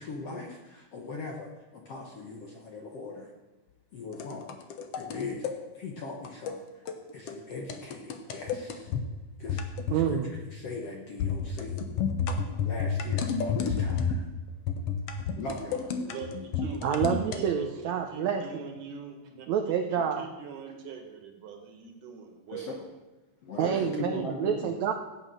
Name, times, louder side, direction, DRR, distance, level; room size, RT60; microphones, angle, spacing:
voice 1, 0.0-3.3 3.9-4.6 5.0-5.5 5.7-6.8 7.1-8.9 9.4-9.6 9.9-11.7 12.6-14.2 15.4-15.9 22.5-22.8 23.4-24.7, left 3 dB, 60° left, 0 dB, 1.7 m, -40 dB
sound 1, 4.1-5.6 6.2-6.6 6.9-7.0 7.3-7.4 7.7-9.1 9.5-10.1 10.3-10.6 11.2-14.3 14.7-17.4, left 6 dB, 80° left, 1.3 m, -31 dB
voice 2, 9.9-10.3 16.8-18.6 19.5-20.3 23.6-24.9, right 8 dB, 80° right, 4 dB, 1.6 m, -28 dB
voice 3, 16.0-19.5 19.9-22.9 23.6-24.3, right 5 dB, 65° right, 4 dB, 3.1 m, -42 dB
15.5 x 8.8 x 6.4 m, 1.2 s
omnidirectional pair, 4.3 m